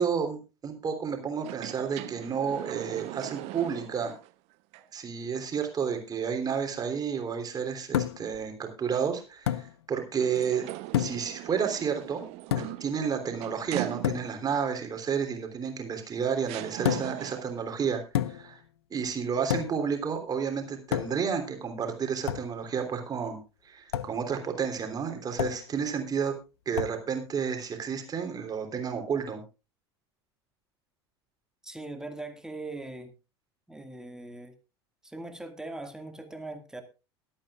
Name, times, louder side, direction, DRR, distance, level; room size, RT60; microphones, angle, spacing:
voice 1, 0.0-4.1 4.9-10.7 11.0-12.2 12.5-18.0 18.3-18.6 18.9-23.4 23.6-26.3 26.6-29.4, right 7 dB, 25° right, 4 dB, 3.3 m, -31 dB
sound 1, 1.4-4.3 4.7-4.8 10.2-14.5 15.7-15.8 16.5-17.6, right 19 dB, 50° right, 0.9 m, -40 dB
sound 2, 7.9-8.4 9.5-9.7 10.9-11.3 12.5-12.9 14.0-14.3 16.8-17.2 18.1-18.6 19.5-19.9 20.9-21.3 22.3-22.5 23.9-24.2 25.4-25.7 26.7-27.0, left 11 dB, 70° left, 0.6 m, -29 dB
voice 2, 31.6-33.1 33.7-34.5 35.0-36.8, right 2 dB, 5° right, 6 dB, 2.1 m, -40 dB
22.0 x 8.8 x 2.4 m, 0.30 s
figure-of-eight pair, 75°, 14 cm